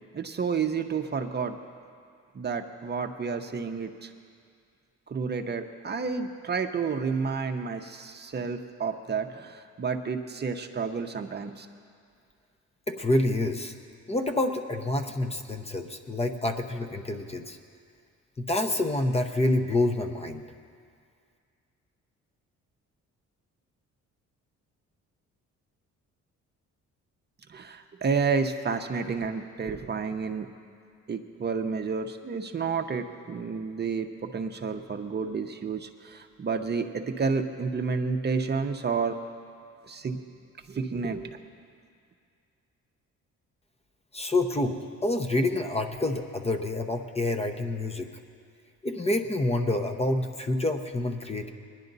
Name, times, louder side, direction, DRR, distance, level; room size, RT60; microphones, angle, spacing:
voice 1, 0.1-1.6 2.3-4.1 5.1-11.7 27.5-30.5 31.1-39.2 39.9-40.2 40.7-41.3, right 5 dB, 35° right, 6 dB, 0.8 m, -30 dB
voice 2, 12.9-13.7 14.1-17.6 18.4-20.4 44.1-48.1 48.8-51.5, left 2 dB, 20° left, 6 dB, 0.8 m, -27 dB
20.0 x 10.5 x 4.0 m, 2.2 s
cardioid pair, 90°, 30 cm